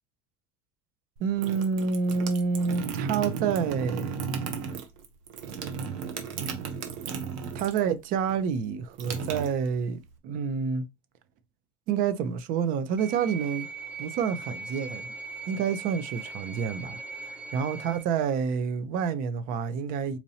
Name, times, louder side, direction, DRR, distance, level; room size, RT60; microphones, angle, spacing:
voice 1, 1.2-4.2 7.5-10.9 11.9-13.7 14.0-15.1 15.5-17.0 17.2-20.2, right 6 dB, 60° right, 0.7 m, -28 dB
sound 1, 1.2-7.9 8.2-10.1, right 6 dB, 85° right, 0.9 m, -34 dB
sound 2, 13.0-18.0, right 4 dB, 5° right, 0.4 m, -40 dB
4.3 x 2.8 x 2.8 m
supercardioid pair, 115°, 16 cm